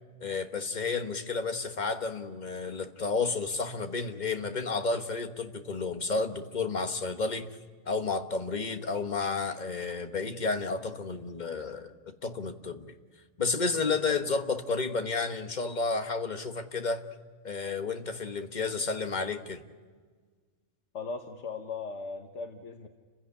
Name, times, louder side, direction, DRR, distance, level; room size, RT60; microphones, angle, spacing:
voice 1, 0.2-7.5 7.9-12.9 13.4-17.0 17.4-19.6, left 4 dB, 40° left, 6 dB, 1.4 m, -31 dB
voice 2, 20.9-22.9, left 4 dB, 85° left, 4 dB, 1.6 m, -38 dB
29.5 x 16.5 x 9.9 m, 1.5 s
omnidirectional pair, 1.2 m